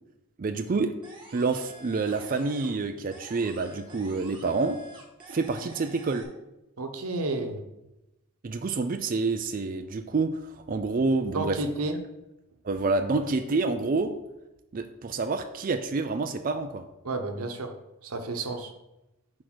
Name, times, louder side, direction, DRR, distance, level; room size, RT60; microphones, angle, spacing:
voice 1, 0.4-0.9 1.3-4.8 5.3-6.3 8.4-11.6 12.6-14.1 14.7-16.8, right 3 dB, 40° right, 6 dB, 0.4 m, -28 dB
sound 1, 1.0-2.8 3.1-6.2, right 2 dB, 20° right, 1.8 m, -49 dB
voice 2, 6.8-7.6 11.3-12.0 17.0-17.7 18.0-18.7, right 2 dB, 75° right, 5 dB, 1.0 m, -31 dB
6.2 x 4.7 x 6.2 m, 0.94 s
head